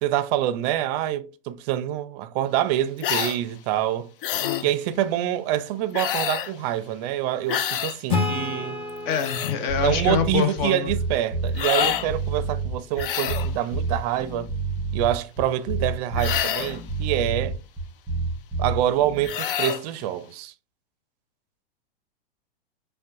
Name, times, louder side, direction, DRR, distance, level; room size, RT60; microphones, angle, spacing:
voice 1, 0.0-4.1 4.6-8.8 9.8-14.5 14.9-17.6 18.6-20.5, right 12 dB, 45° right, 0.5 m, -26 dB
sound 1, 3.0-3.4 4.2-4.7 5.9-6.5 7.5-8.0 8.9-9.6 11.6-12.1 13.0-13.5 16.2-16.8 19.2-19.8, left 10 dB, 65° left, 0.5 m, -27 dB
Acoustic guitar / Strum, 8.1-11.5, left 3 dB, 20° left, 1.1 m, -31 dB
voice 2, 9.0-11.0, left 8 dB, 50° left, 0.9 m, -26 dB
sound 2, 9.7-19.3, right 3 dB, ahead, 1.8 m, -29 dB
5.2 x 2.2 x 2.6 m
hypercardioid pair, 100°, 29 cm